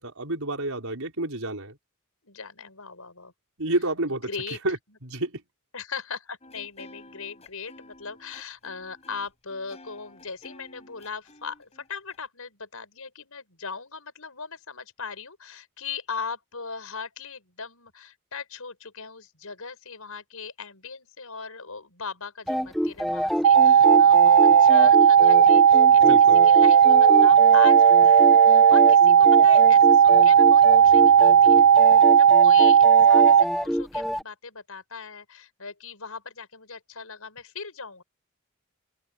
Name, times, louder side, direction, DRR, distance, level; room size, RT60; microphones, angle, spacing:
voice 1, 0.0-1.8 3.6-4.3 4.6-4.8 5.0-5.4 26.0-26.4, right 2 dB, 70° right, 5.4 m, -29 dB
voice 2, 2.2-3.3 4.3-4.6 5.7-31.7 32.2-38.0, left 5 dB, 75° left, 5.9 m, -39 dB
sound 1, 6.4-12.2, left 1 dB, 30° left, 7.3 m, -51 dB
sound 2, 22.5-34.2, equal, ahead, 1.0 m, -27 dB
sound 3, 23.4-33.4, right 8 dB, 90° right, 0.4 m, -15 dB
head